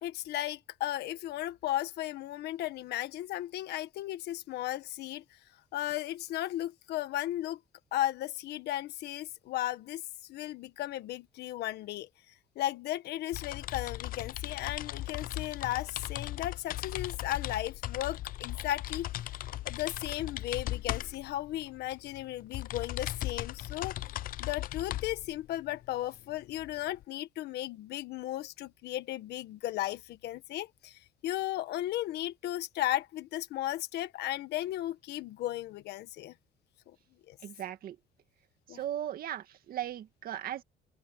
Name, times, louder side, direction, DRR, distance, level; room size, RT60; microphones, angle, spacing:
voice 1, 0.0-5.4 5.7-7.6 7.9-10.0 10.3-19.1 19.6-24.0 24.4-36.3 36.9-37.0 37.3-37.4 38.7-38.8, left 14 dB, 75° left, 1.5 m, -35 dB
sound 1, 13.3-27.0, left 14 dB, 55° left, 0.5 m, -38 dB
voice 2, 37.4-38.0 38.7-40.6, right 11 dB, 60° right, 2.0 m, -37 dB
open air
cardioid pair, 110°, 17 cm